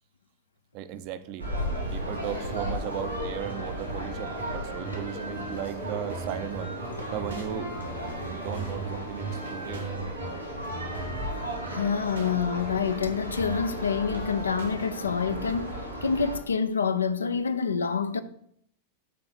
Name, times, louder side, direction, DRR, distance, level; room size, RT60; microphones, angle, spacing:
voice 1, 0.7-1.5 1.9-6.7 7.1-7.7 8.3-9.9, right 10 dB, 45° right, 0.6 m, -36 dB
sound 1, 1.4-16.4, right 1 dB, 90° right, 3.3 m, -34 dB
sound 2, 3.5-3.8 4.2-4.5 4.9-5.3 5.6-6.0 7.0-7.5 7.8-8.8 9.1-9.6 10.8-10.9 11.2-11.8 12.2-13.6 13.8-14.2, equal, 90° left, 1.7 m, -48 dB
sound 3, 6.1-6.4 7.3-7.5 8.2-8.3 8.5-8.9 9.7-9.9 10.6-10.7 10.9-11.3 12.2-12.3 13.1-13.2 13.4-13.7 14.6-14.7 15.5-15.6, right 2 dB, 70° right, 1.3 m, -41 dB
voice 2, 11.7-18.2, left 6 dB, 75° left, 0.5 m, -27 dB
7.7 x 3.9 x 6.1 m
figure-of-eight pair, 90°, 0 cm